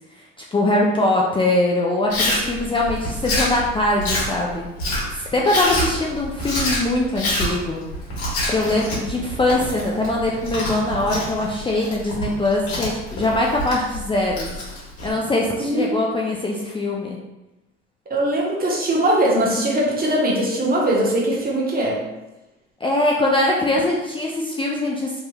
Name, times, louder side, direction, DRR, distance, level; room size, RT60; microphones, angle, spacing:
voice 1, 0.5-4.7 5.1-7.8 8.5-14.5 15.0-17.2 22.8-25.2, left 2 dB, 15° left, -2 dB, 0.4 m, -22 dB
Chewing mastication, 2.1-15.1, left 1 dB, 70° left, 1.4 m, -27 dB
voice 2, 15.6-16.0 18.1-22.0, right 1 dB, 30° right, -3 dB, 1.0 m, -20 dB
3.1 x 3.0 x 2.2 m, 1.0 s
supercardioid pair, 70°, 30 cm